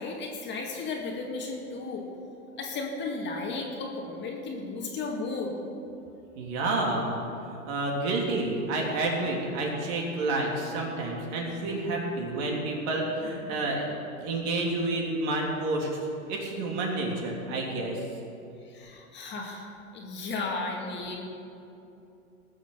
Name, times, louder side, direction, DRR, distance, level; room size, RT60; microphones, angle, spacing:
voice 1, 0.0-2.1 2.6-5.5 18.6-21.3, left 3 dB, 25° left, 0 dB, 2.1 m, -34 dB
voice 2, 6.4-7.2 7.5-15.9 16.3-18.0, right 2 dB, 45° right, -1 dB, 3.5 m, -29 dB
19.0 x 7.1 x 6.8 m, 2.7 s
hypercardioid pair, 120°, 43 cm